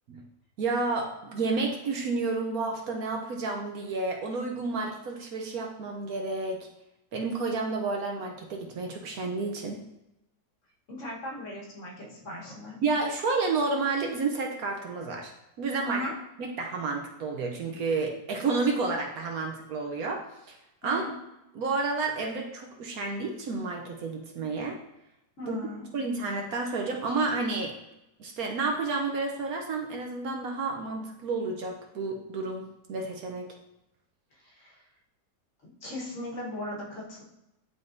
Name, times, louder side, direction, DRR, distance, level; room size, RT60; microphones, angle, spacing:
voice 1, 0.6-6.7 7.1-9.8 12.8-16.0 16.4-20.6 20.8-21.0 21.5-24.8 25.4-25.6 25.9-27.7 28.2-33.5, right 3 dB, 65° right, 2 dB, 1.1 m, -30 dB
voice 2, 10.9-12.8 15.8-16.2 20.8-21.1 25.4-25.9 34.3-34.8 35.6-37.2, equal, 50° left, -4 dB, 1.5 m, -38 dB
10.5 x 3.6 x 2.6 m, 0.89 s
omnidirectional pair, 1.8 m